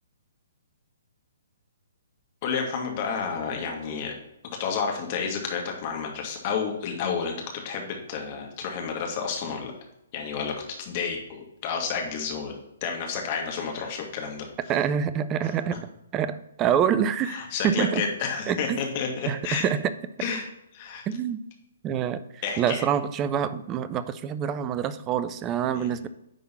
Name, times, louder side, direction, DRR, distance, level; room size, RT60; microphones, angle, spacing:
voice 1, 2.4-4.1 4.6-9.7 10.1-12.5 12.8-14.5 17.3-19.6 20.2-20.5 20.7-21.1 22.4-22.8 25.7-25.9, left 6 dB, 35° left, 2 dB, 1.8 m, -30 dB
voice 2, 14.7-15.8 16.1-17.4 17.6-18.0 18.5-18.8 19.2-19.9 21.1-21.4 21.8-26.1, right 8 dB, 20° right, 13 dB, 0.5 m, -26 dB
10.0 x 3.8 x 4.2 m, 0.85 s
figure-of-eight pair, 125°, 0 cm